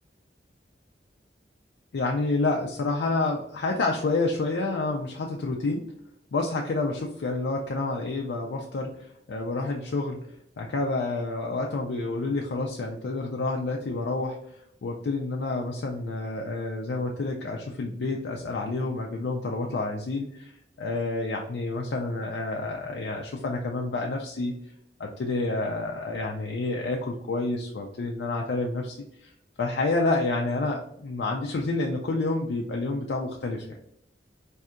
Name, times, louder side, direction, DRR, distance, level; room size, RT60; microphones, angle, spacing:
voice 1, 1.9-5.8 6.3-14.5 14.8-20.5 20.8-24.5 25.0-29.3 29.6-33.8, left 3 dB, 75° left, 0 dB, 0.4 m, -29 dB
4.4 x 2.7 x 2.5 m, 0.73 s
head